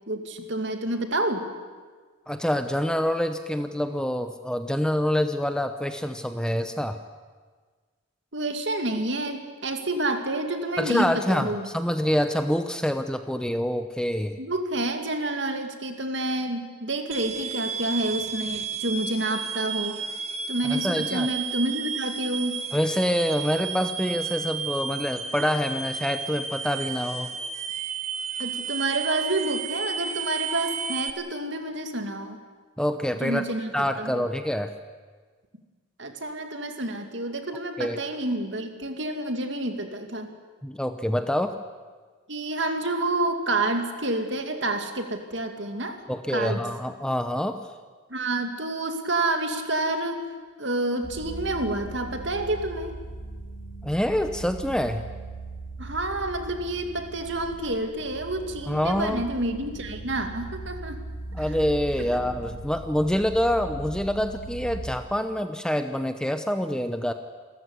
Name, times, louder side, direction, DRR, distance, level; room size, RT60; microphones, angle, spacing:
voice 1, 0.1-1.5 8.3-11.7 14.4-20.0 20.5-22.6 28.4-32.4 33.2-33.7 34.0-34.3 36.0-40.3 42.3-46.0 46.3-46.7 48.1-50.3 50.6-53.0 55.8-61.0 62.0-62.1, right 2 dB, 60° right, 5 dB, 2.4 m, -29 dB
voice 2, 2.3-7.0 10.8-14.4 20.6-21.3 22.7-27.3 32.8-33.4 33.7-34.7 37.8-38.0 40.6-41.6 46.1-47.6 53.8-55.0 58.7-59.2 61.3-67.1, equal, 5° left, 8 dB, 0.8 m, -26 dB
sound 1, 17.1-31.1, right 6 dB, 35° right, 1.4 m, -32 dB
sound 2, 51.0-65.0, right 2 dB, 40° left, 6.3 m, -39 dB
28.0 x 14.0 x 9.7 m, 1.5 s
head